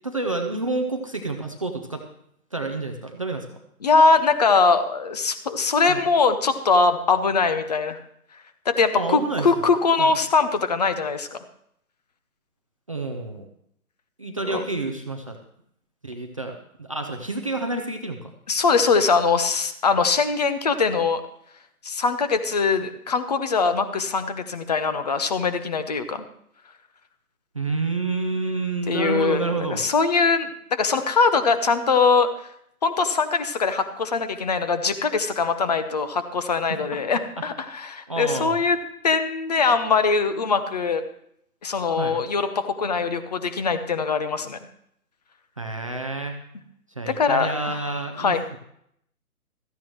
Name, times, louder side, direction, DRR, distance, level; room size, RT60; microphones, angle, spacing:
voice 1, 0.0-2.0 2.5-3.5 5.9-6.0 9.0-9.5 10.0-10.1 12.9-13.5 14.2-15.4 16.0-18.3 27.5-29.8 36.7-36.8 37.4-37.5 38.1-38.6 42.0-42.2 45.6-46.4 47.0-48.6, right 3 dB, 25° right, 3 dB, 0.5 m, -29 dB
voice 2, 3.8-8.0 8.7-11.4 14.5-14.6 18.5-21.2 21.8-26.2 28.9-32.3 32.8-38.8 39.0-41.0 41.6-44.6 47.1-47.8 48.2-48.4, left 4 dB, 30° left, 11 dB, 0.7 m, -22 dB
16.0 x 14.0 x 3.1 m, 0.71 s
figure-of-eight pair, 145°, 45 cm